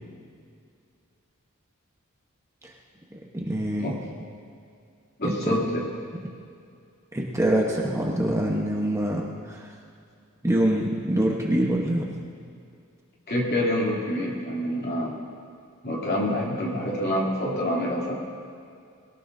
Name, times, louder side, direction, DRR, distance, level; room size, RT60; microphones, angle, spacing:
voice 1, 3.1-4.0 5.2-5.7 7.1-9.7 10.4-12.1, right 1 dB, 15° right, -2 dB, 1.2 m, -25 dB
voice 2, 5.2-5.6 13.3-15.2 15.8-18.1, left 1 dB, 45° left, -3 dB, 3.1 m, -26 dB
21.5 x 18.5 x 2.7 m, 2.4 s
head